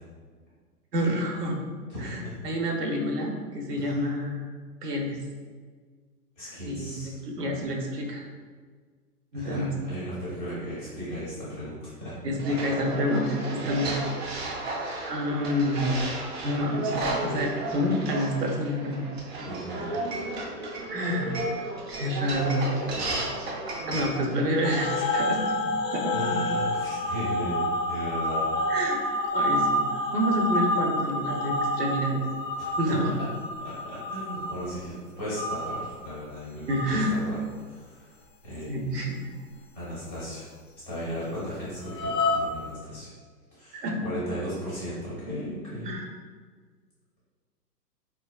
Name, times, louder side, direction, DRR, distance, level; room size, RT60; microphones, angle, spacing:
voice 1, 0.9-1.6 2.0-4.5 4.8-5.2 6.6-8.2 9.3-9.7 12.2-13.9 15.1-16.1 16.4-19.0 20.9-21.3 21.9-22.7 23.9-26.1 28.7-29.0 29.3-29.9 30.1-32.2 32.8-33.1 36.7-37.2 38.7-39.3 43.7-44.0 45.8-46.1, equal, 75° right, 1 dB, 0.8 m, -28 dB
voice 2, 1.9-2.4 3.8-4.0 6.4-7.1 9.3-12.2 12.5-12.6 19.4-20.0 26.1-28.5 32.9-33.3 33.6-37.4 37.7-38.2 38.4-39.1 39.7-40.4 40.9-43.1 43.5-45.9, equal, 10° left, -9 dB, 0.4 m, -36 dB
sound 1, 12.4-25.1, right 2 dB, 40° right, 0.6 m, -33 dB
sound 2, 24.6-34.8 35.3-36.1 36.7-37.1 41.8-42.4, left 1 dB, 85° left, 0.5 m, -28 dB
3.9 x 2.3 x 2.3 m, 1.5 s
hypercardioid pair, 135°, 48 cm